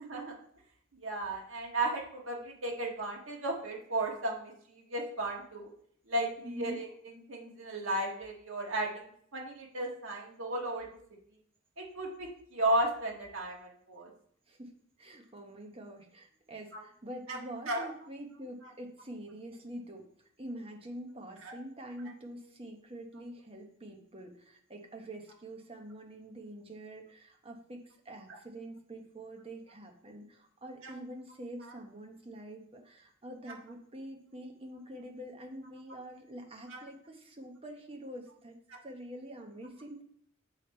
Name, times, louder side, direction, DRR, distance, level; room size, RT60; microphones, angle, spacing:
voice 1, 1.0-5.7 6.1-10.9 11.8-14.1 16.7-16.8 17.3-17.4 17.7-17.8 21.4-21.5 30.8-30.9 36.7-36.8 38.7-38.8, right 1 dB, 65° right, -1 dB, 1.6 m, -34 dB
voice 2, 6.4-6.8 14.5-38.6 38.8-40.0, right 1 dB, 25° right, 2 dB, 1.0 m, -46 dB
8.3 x 3.5 x 4.3 m, 0.66 s
head